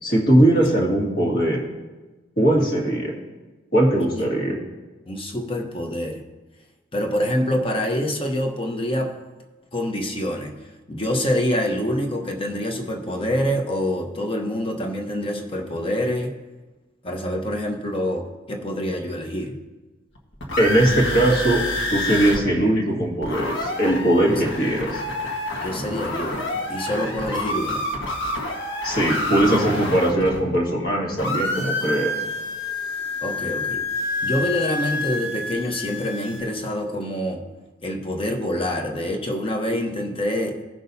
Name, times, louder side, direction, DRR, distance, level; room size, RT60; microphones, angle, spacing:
voice 1, 0.0-1.6 2.4-3.1 3.7-4.6 20.6-21.6 21.9-25.0 28.8-32.1, right 1 dB, 45° left, -2 dB, 1.9 m, -20 dB
voice 2, 3.9-4.3 5.1-6.2 6.9-9.1 9.7-10.6 10.9-16.3 17.0-19.6 25.6-27.9 33.2-33.8 34.2-37.4 37.8-40.6, equal, 25° left, 3 dB, 0.9 m, -26 dB
sound 1, 20.2-22.4 22.7-22.8 23.0-30.9 31.2-36.4, left 2 dB, 65° left, 1.4 m, -28 dB
16.5 x 6.1 x 2.7 m, 1.2 s
head